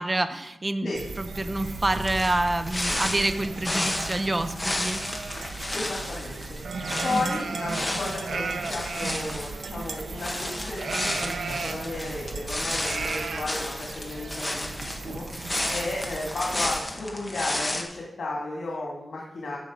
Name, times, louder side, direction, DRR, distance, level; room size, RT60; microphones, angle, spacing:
voice 1, 0.0-5.0 7.1-7.4, right 2 dB, 25° right, 9 dB, 0.8 m, -27 dB
sound 1, 0.9-16.8, right 4 dB, 85° right, 0.9 m, -36 dB
sound 2, 1.4-17.8, left 1 dB, 15° left, 1.3 m, -33 dB
voice 2, 5.7-6.4 7.0-15.2 15.7-19.6, left 2 dB, 70° left, -3 dB, 2.3 m, -33 dB
15.0 x 5.5 x 5.1 m, 0.89 s
wide cardioid pair, 135°, 0 cm